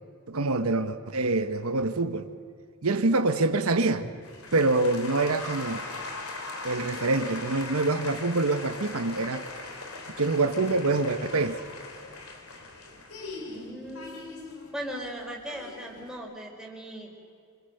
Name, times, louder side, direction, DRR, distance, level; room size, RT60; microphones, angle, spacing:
voice 1, 0.3-2.3 2.8-4.0 4.5-5.8 6.6-9.4 10.2-11.6, right 2 dB, 85° right, 1.2 m, -25 dB
sound 1, 4.2-16.2, left 3 dB, 90° left, 3.5 m, -40 dB
voice 2, 13.5-14.3 14.7-17.2, equal, 5° right, 4.6 m, -38 dB
27.0 x 26.5 x 6.7 m
head